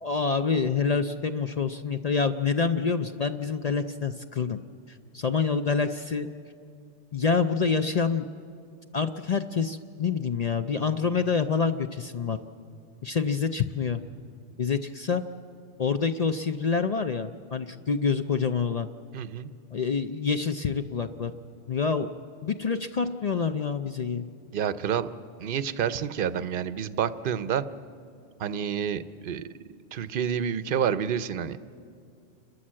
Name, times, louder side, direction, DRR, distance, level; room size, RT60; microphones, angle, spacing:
voice 1, 0.0-4.6 4.9-6.3 7.1-8.3 8.9-12.4 13.0-14.0 14.6-15.2 15.8-18.9 19.7-21.3 21.7-22.1 22.4-24.3, left 5 dB, 50° left, 8 dB, 0.4 m, -27 dB
voice 2, 19.1-19.5 24.5-25.1 25.4-27.6 28.4-29.5 29.9-31.6, right 8 dB, 55° right, 14 dB, 0.7 m, -28 dB
29.5 x 13.0 x 7.5 m, 2.4 s
omnidirectional pair, 1.3 m